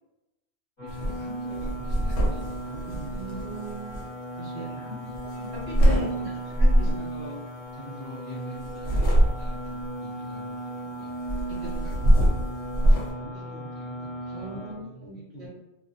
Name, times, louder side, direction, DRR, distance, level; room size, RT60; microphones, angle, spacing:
voice 1, 0.8-3.6 4.5-5.2 5.9-6.6 6.8-11.2 11.6-12.3 12.7-15.5, right 1 dB, 40° left, -9 dB, 0.7 m, -45 dB
sound 1, 0.8-14.7, right 1 dB, 25° left, 1.1 m, -36 dB
sound 2, 0.9-1.2 1.5-4.0 5.1-6.0 6.5-7.0 8.6-9.7 11.2-13.1, equal, 70° left, 1.0 m, -23 dB
voice 2, 2.8-4.0 4.4-6.3 6.6-6.9 11.6-11.8 14.3-15.5, right 2 dB, 65° right, -4 dB, 1.0 m, -39 dB
2.4 x 2.1 x 2.7 m, 0.97 s
omnidirectional pair, 1.2 m